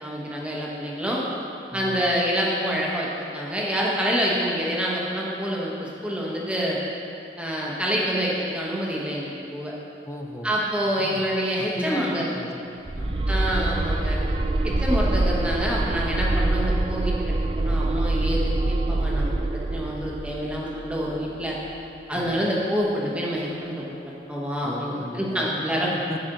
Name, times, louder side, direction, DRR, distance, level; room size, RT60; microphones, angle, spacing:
voice 1, 0.0-1.2 1.7-3.1 3.3-6.8 7.4-9.7 10.4-12.3 13.3-14.2 14.6-17.1 17.6-21.6 22.1-25.9, equal, 5° right, -5 dB, 1.2 m, -27 dB
voice 2, 1.7-2.1 10.0-10.6 11.0-11.3 11.6-13.3 14.7-15.0 22.1-22.5 24.6-26.2, left 1 dB, 15° left, 3 dB, 0.6 m, -37 dB
sound 1, 12.9-21.8, right 2 dB, 30° right, 0.4 m, -25 dB
10.0 x 6.2 x 4.0 m, 2.7 s
head